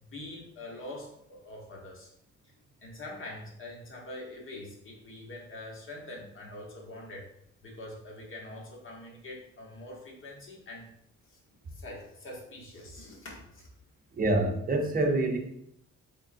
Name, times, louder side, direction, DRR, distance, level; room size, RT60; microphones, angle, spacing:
voice 1, 0.0-2.1 2.8-7.3 7.6-10.9 11.3-11.4 11.7-13.7, left 1 dB, 45° left, -1 dB, 1.3 m, -44 dB
voice 2, 14.2-15.4, right 2 dB, 30° right, 2 dB, 0.8 m, -26 dB
3.8 x 3.7 x 2.6 m, 0.73 s
cardioid pair, 90°, 30 cm